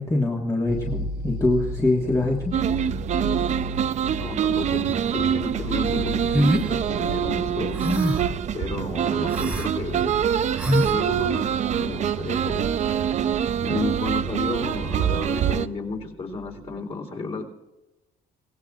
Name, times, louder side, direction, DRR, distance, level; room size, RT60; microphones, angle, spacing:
voice 1, 0.0-2.5, left 2 dB, 20° left, -2 dB, 1.7 m, -23 dB
sound 1, 0.7-16.8, equal, 70° right, 1.0 m, -37 dB
sound 2, 2.5-15.7, right 9 dB, 45° right, 0.6 m, -25 dB
voice 2, 4.2-7.8 8.5-10.2 10.8-12.7 13.6-17.5, left 3 dB, 40° left, 1 dB, 3.6 m, -32 dB
sound 3, 6.3-6.7 7.8-8.3 9.3-9.7 10.6-10.9, equal, 5° right, 2.0 m, -23 dB
24.5 x 17.5 x 2.5 m, 1.1 s
cardioid pair, 110°, 17 cm